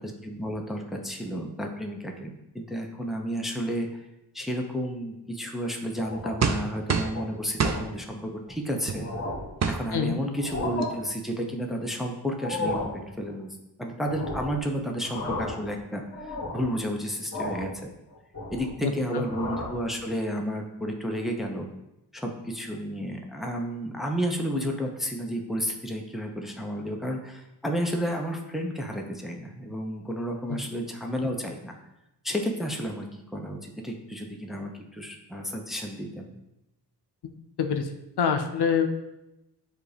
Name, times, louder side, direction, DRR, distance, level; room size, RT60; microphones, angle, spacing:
voice 1, 0.0-4.0 4.3-9.1 9.7-17.9 18.5-21.7 22.1-31.7 32.2-33.1 33.3-36.4, equal, ahead, 1 dB, 0.7 m, -32 dB
sound 1, 6.0-6.6 7.0-7.2 7.6-7.8 8.5-8.6 8.9-9.6 10.3-10.9 12.3-13.0 14.0-14.6 15.0-15.7 16.1-16.7 17.3-17.7 18.1-18.8 19.2-19.8, left 2 dB, 35° left, 1.6 m, -34 dB
sound 2, 6.4-7.2 7.6-7.8 8.9-9.0 9.6-9.8 10.5-10.6 10.8-11.1, right 5 dB, 40° right, 0.5 m, -25 dB
voice 2, 18.8-19.3 30.5-30.6 37.6-37.9 38.2-38.9, left 7 dB, 70° left, 6 dB, 0.6 m, -25 dB
7.3 x 2.6 x 5.0 m, 0.91 s
wide cardioid pair, 100°, 41 cm